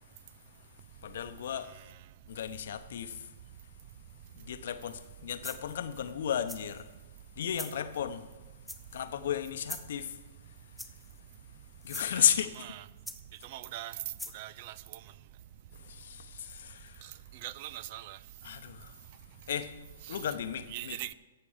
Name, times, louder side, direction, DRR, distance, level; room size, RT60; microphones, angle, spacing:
voice 1, 1.0-1.7 2.3-3.2 4.4-6.9 7.4-8.3 8.9-10.1 11.8-12.5 15.9-16.9 18.4-18.9 19.5-19.7 20.1-21.0, left 9 dB, 65° left, 0.8 m, -33 dB
sound 1, 4.9-5.1 5.4-5.8 6.5-6.9 7.5-7.8 8.7-9.1 9.6-10.0 10.8-11.2 11.8-12.1 13.1-13.5 14.2-14.4, left 1 dB, ahead, 0.7 m, -43 dB
voice 2, 13.5-13.9 14.3-14.7 17.4-18.2 20.7-21.1, right 14 dB, 45° right, 0.5 m, -40 dB
14.5 x 7.0 x 4.9 m
hypercardioid pair, 120°, 0 cm